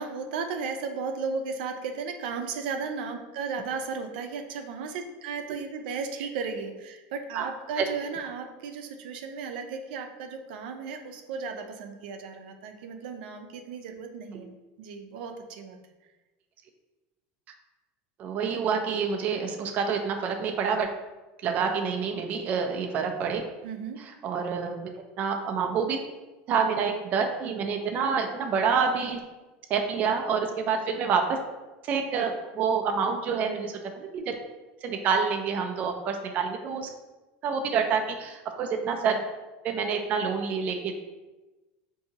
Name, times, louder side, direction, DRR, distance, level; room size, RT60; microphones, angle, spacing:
voice 1, 0.0-14.5 14.8-15.8 23.6-24.0, right 5 dB, 90° right, 5 dB, 0.5 m, -35 dB
voice 2, 18.2-20.9 21.4-23.4 24.0-24.9 25.2-26.0 26.5-29.2 29.7-31.4 31.9-34.3 34.8-36.9 37.4-39.2 39.6-41.0, right 6 dB, 30° right, 4 dB, 0.3 m, -27 dB
4.7 x 2.7 x 2.8 m, 1.1 s
cardioid pair, 165°, 5 cm